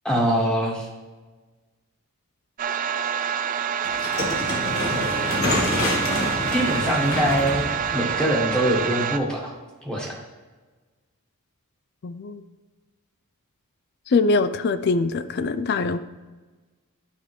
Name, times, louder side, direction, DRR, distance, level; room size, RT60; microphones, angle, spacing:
voice 1, 0.0-0.9 6.5-7.6 7.9-9.5 9.8-10.2, equal, 5° left, -3 dB, 1.4 m, -23 dB
sound 1, 2.6-9.2, right 8 dB, 35° right, 0.3 m, -27 dB
sound 2, 3.8-9.0, left 2 dB, 65° left, 1.4 m, -27 dB
voice 2, 12.0-12.4 14.1-16.0, left 3 dB, 45° left, 13 dB, 0.4 m, -23 dB
11.5 x 5.0 x 3.2 m, 1.3 s
head